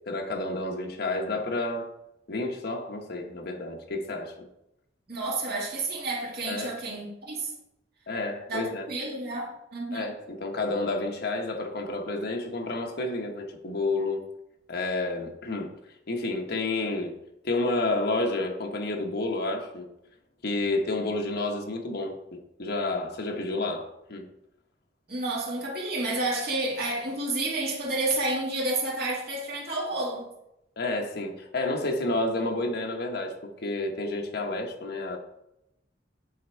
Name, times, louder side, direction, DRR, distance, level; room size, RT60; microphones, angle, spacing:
voice 1, 0.1-1.9 2.3-4.5 6.5-6.8 8.1-8.9 9.9-14.2 14.7-15.7 16.1-17.2 17.4-19.9 20.4-22.2 22.6-24.3 30.8-35.2, left 2 dB, 60° left, 1.1 m, -30 dB
voice 2, 5.1-7.5 8.5-8.6 8.9-10.1 25.1-30.3, right 2 dB, 60° right, 2.0 m, -30 dB
8.5 x 3.5 x 4.5 m
head